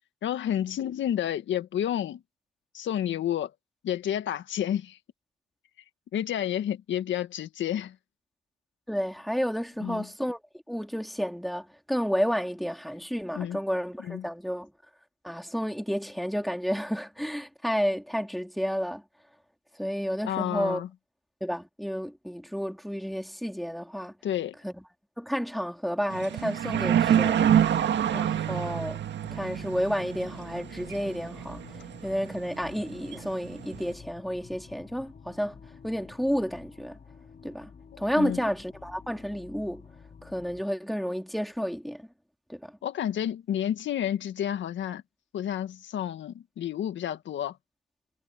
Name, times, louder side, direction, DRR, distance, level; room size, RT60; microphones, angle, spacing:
voice 1, 0.2-2.2 2.7-3.5 3.8-5.0 6.1-7.9 9.8-10.0 13.3-13.6 14.0-14.3 20.2-20.9 24.2-24.5 38.1-38.4 42.8-45.0 45.3-47.6, left 10 dB, 70° left, 1.8 m, -30 dB
voice 2, 8.9-10.4 10.7-14.7 15.2-19.0 19.8-20.8 21.4-24.1 24.6-24.7 25.2-27.5 28.1-29.0 29.3-31.6 32.0-37.0 37.4-37.7 38.0-39.8 40.2-42.1 42.5-42.7, equal, ahead, 3.6 m, -31 dB
sound 1, 26.1-33.9, right 9 dB, 65° right, 1.9 m, -27 dB
sound 2, 29.2-40.6, left 5 dB, 40° left, 4.5 m, -49 dB
cardioid pair, 90°, 20 cm